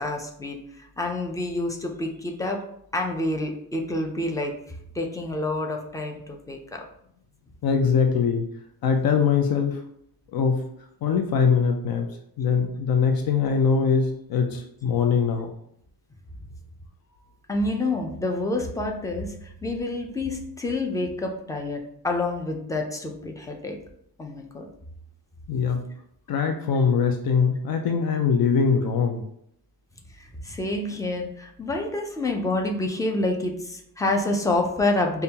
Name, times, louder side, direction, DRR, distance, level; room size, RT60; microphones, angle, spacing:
voice 1, 0.0-2.6 2.9-4.5 4.9-6.8 17.5-23.8 24.2-24.7 30.2-35.2, left 2 dB, 10° left, 2 dB, 0.5 m, -28 dB
voice 2, 7.6-8.5 8.8-9.8 10.3-10.6 11.0-12.1 12.4-15.5 25.5-25.9 26.3-29.2, left 6 dB, 65° left, 4 dB, 0.5 m, -22 dB
5.2 x 2.3 x 2.8 m, 0.70 s
cardioid pair, 135°, 38 cm